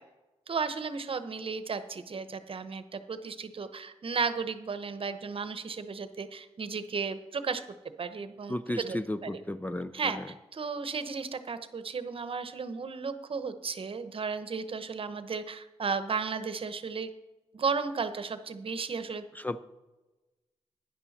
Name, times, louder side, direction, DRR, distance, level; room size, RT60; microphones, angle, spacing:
voice 1, 0.5-7.6 8.0-8.5 8.8-9.0 9.9-10.2 10.5-17.1 17.5-19.2, right 5 dB, 50° right, 11 dB, 0.9 m, -34 dB
voice 2, 8.5-10.3 19.3-19.6, left 1 dB, 15° left, 12 dB, 0.5 m, -34 dB
11.5 x 10.0 x 4.2 m, 1.1 s
cardioid pair, 75°, 12 cm